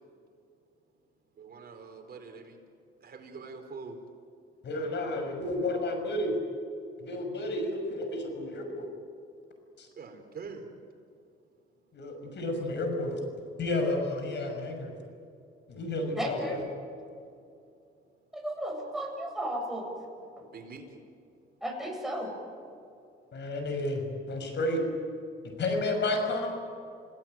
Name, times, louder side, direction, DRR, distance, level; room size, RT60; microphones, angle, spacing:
voice 1, 1.4-2.6 3.0-4.0 10.0-10.7 20.5-20.8, right 4 dB, 50° right, 4 dB, 4.6 m, -44 dB
voice 2, 4.6-6.3 7.0-8.9 9.8-9.9 11.9-13.2 13.6-14.9 15.7-16.6 23.3-24.8 25.6-26.5, left 2 dB, 65° left, 5 dB, 6.5 m, -31 dB
voice 3, 16.2-16.6 18.3-19.9 20.4-20.5 21.6-22.3, equal, ahead, 0 dB, 7.9 m, -34 dB
29.5 x 17.5 x 9.2 m, 2.4 s
cardioid pair, 90°, 20 cm